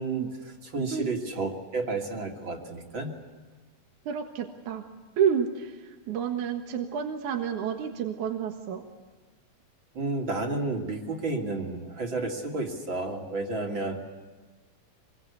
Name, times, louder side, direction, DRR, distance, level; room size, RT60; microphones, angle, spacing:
voice 1, 0.0-3.2 9.9-14.0, right 3 dB, 35° right, 2 dB, 3.1 m, -31 dB
voice 2, 4.1-4.8 5.2-8.8, right 8 dB, 65° right, 3 dB, 2.8 m, -29 dB
26.0 x 23.0 x 8.4 m, 1.3 s
omnidirectional pair, 3.9 m